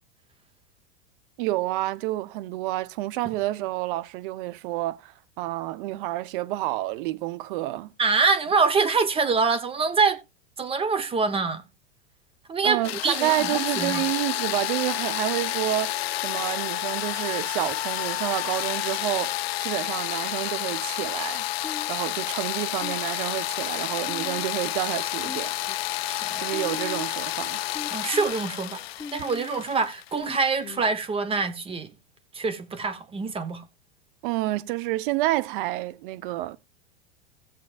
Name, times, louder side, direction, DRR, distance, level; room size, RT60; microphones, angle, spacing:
voice 1, 1.4-7.9 12.6-16.0 16.2-21.5 21.9-25.5 26.4-27.6 34.2-36.6, right 17 dB, 55° right, 0.9 m, -29 dB
voice 2, 8.0-10.2 10.6-11.6 12.5-14.0 26.1-26.5 27.9-28.8 29.1-31.9 32.3-33.6, right 4 dB, 20° right, 1.0 m, -25 dB
sound 1, 12.8-30.6, left 16 dB, 80° left, 0.5 m, -30 dB
sound 2, 21.6-22.2 22.8-23.3 24.1-24.8 25.2-25.9 26.5-27.2 27.7-28.3 29.0-29.6 30.2-30.9, left 4 dB, 15° left, 0.9 m, -40 dB
16.5 x 7.5 x 2.5 m
hypercardioid pair, 125°, 30 cm